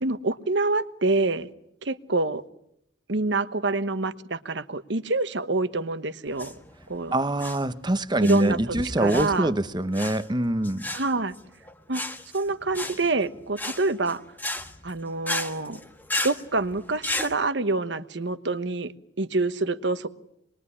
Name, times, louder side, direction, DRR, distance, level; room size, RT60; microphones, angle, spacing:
voice 1, 0.0-1.5 1.8-2.4 3.1-6.5 6.9-7.1 8.2-8.6 9.0-9.5 10.9-11.3 11.9-12.0 12.3-14.2 14.8-15.8 16.2-20.1, right 3 dB, 70° right, 1.2 m, -26 dB
sound 1, 6.3-17.3, left 2 dB, 10° left, 1.5 m, -34 dB
voice 2, 7.1-10.9, right 1 dB, 25° right, 1.0 m, -24 dB
26.5 x 22.0 x 9.8 m
head